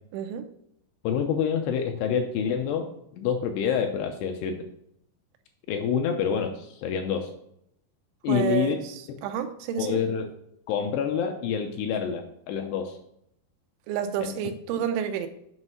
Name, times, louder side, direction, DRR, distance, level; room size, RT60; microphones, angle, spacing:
voice 1, 0.1-0.5 8.3-9.0 9.2-10.0 13.9-15.3, right 9 dB, 85° right, 8 dB, 3.0 m, -29 dB
voice 2, 1.0-4.6 5.7-7.3 8.2-8.8 9.8-10.3 10.7-13.0 14.2-14.3, left 7 dB, 80° left, 4 dB, 2.6 m, -27 dB
8.0 x 5.4 x 5.6 m, 0.75 s
omnidirectional pair, 5.4 m